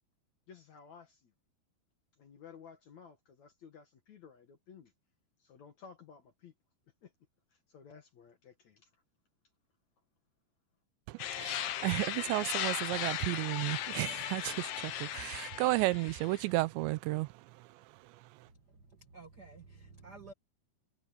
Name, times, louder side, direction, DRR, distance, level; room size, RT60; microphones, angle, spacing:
voice 1, 0.5-1.3 2.2-4.9 5.4-6.5 7.0-7.1 7.7-8.9, left 6 dB, 55° left, 2.2 m, -55 dB
voice 2, 11.1-17.3, right 20 dB, 85° right, 2.9 m, -33 dB
sound 1, 11.2-16.5, left 12 dB, 80° left, 3.6 m, -37 dB
voice 3, 18.4-20.3, right 4 dB, 60° right, 1.0 m, -53 dB
omnidirectional pair, 5.1 m